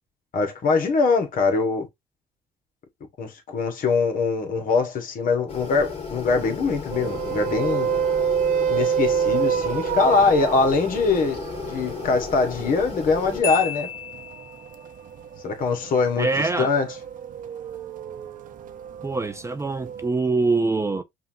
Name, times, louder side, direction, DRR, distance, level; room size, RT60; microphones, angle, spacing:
voice 1, 0.3-1.9 3.2-7.9 8.7-13.9 15.4-16.9, left 4 dB, 55° left, 1.4 m, -23 dB
sound 1, 5.5-13.4, left 5 dB, 35° left, 2.1 m, -34 dB
sound 2, 6.9-20.1, right 8 dB, 50° right, 0.7 m, -29 dB
Marimba xylophone, 13.4-14.9, left 9 dB, 15° left, 0.9 m, -32 dB
voice 2, 16.2-16.7 19.0-21.0, right 3 dB, 15° right, 0.4 m, -24 dB
5.5 x 2.6 x 2.7 m
cardioid pair, 110°, 17 cm